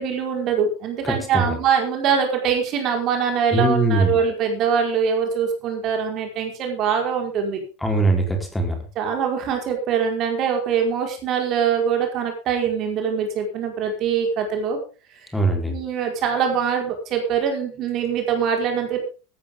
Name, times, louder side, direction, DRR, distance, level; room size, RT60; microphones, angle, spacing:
voice 1, 0.0-7.6 8.9-14.8 15.7-19.0, right 7 dB, 40° right, 3 dB, 4.9 m, -23 dB
voice 2, 1.0-1.6 3.5-4.2 7.8-8.8 15.3-15.7, right 2 dB, 5° left, 3 dB, 4.1 m, -21 dB
15.0 x 13.5 x 3.8 m, 0.34 s
figure-of-eight pair, 80°, 0 cm